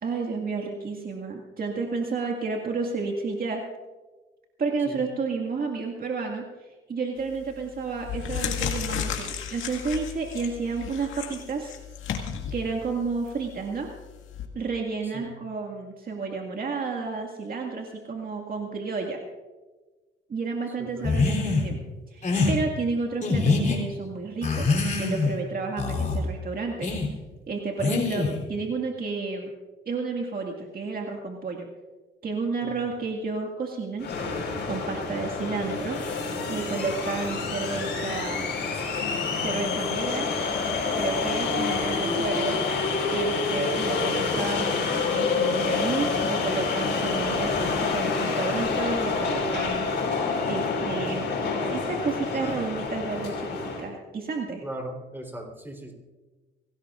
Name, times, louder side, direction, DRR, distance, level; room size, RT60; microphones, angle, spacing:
voice 1, 0.0-3.6 4.6-6.5 6.9-11.8 12.5-13.9 14.5-19.2 20.3-21.8 22.1-24.7 25.0-26.9 27.5-29.5 29.9-31.7 32.2-34.1 34.7-36.0 36.5-38.5 39.4-40.3 41.0-42.6 43.1-49.9 50.5-51.3 51.7-53.5 53.8-54.6, right 4 dB, 45° right, 1 dB, 2.1 m, -31 dB
sound 1, 7.2-7.5 8.0-14.5, left 8 dB, 80° left, 2.0 m, -33 dB
voice 2, 20.8-21.1 32.6-33.0 54.6-55.9, right 1 dB, 10° right, 1 dB, 3.9 m, -38 dB
sound 2, 21.0-21.7 22.2-22.6 23.2-23.8 24.4-25.4 25.8-26.2 26.8-27.1 27.8-28.4, left 3 dB, 40° left, 3.6 m, -24 dB
sound 3, 34.0-53.9, left 4 dB, 60° left, 5.0 m, -27 dB
24.0 x 17.5 x 2.6 m, 1.2 s
cardioid pair, 90°, 20 cm